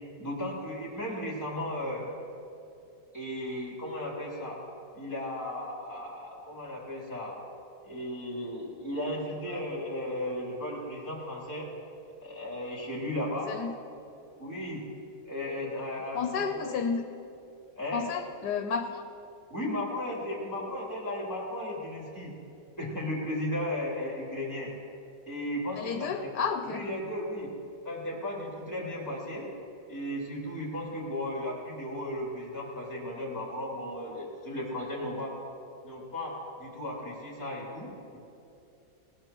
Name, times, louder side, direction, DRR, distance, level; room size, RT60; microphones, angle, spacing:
voice 1, 0.2-2.0 3.1-4.6 4.9-7.4 7.8-11.7 12.2-13.5 14.4-14.8 15.2-16.7 17.8-18.0 19.5-22.3 22.8-24.7 25.3-26.3 26.6-27.5 27.8-29.5 29.9-35.3 35.8-38.2, left 1 dB, 10° left, -4 dB, 3.0 m, -35 dB
voice 2, 16.1-17.0 17.9-19.0 25.8-26.9, left 6 dB, 75° left, 6 dB, 1.3 m, -31 dB
19.5 x 18.5 x 3.0 m, 2.8 s
omnidirectional pair, 1.8 m